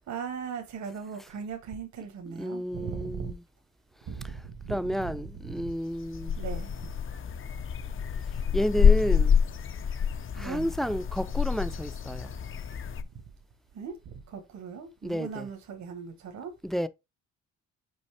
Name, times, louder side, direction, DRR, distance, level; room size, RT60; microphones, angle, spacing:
voice 1, 0.1-3.3 4.1-5.1 5.5-5.7 6.4-6.7 10.4-10.7 13.7-16.5, right 6 dB, 70° right, 1.3 m, -38 dB
voice 2, 2.3-3.4 4.7-6.4 8.5-9.4 10.3-12.3 15.0-15.5 16.6-16.9, equal, ahead, 0.5 m, -31 dB
sound 1, 5.7-13.0, left 7 dB, 45° left, 0.7 m, -27 dB
5.4 x 5.1 x 3.4 m
cardioid pair, 90°, 30 cm